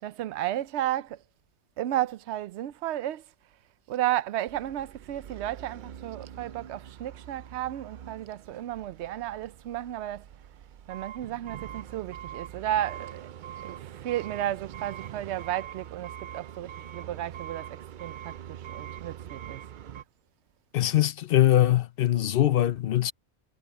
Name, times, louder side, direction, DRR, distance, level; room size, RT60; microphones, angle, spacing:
voice 1, 0.0-1.2 1.8-3.3 3.9-10.3 10.9-13.3 13.6-19.6, right 13 dB, 80° right, 0.9 m, -33 dB
sound 1, 4.5-20.0, right 10 dB, 55° right, 0.6 m, -43 dB
voice 2, 20.7-23.1, left 13 dB, 60° left, 0.7 m, -22 dB
omnidirectional pair, 1.1 m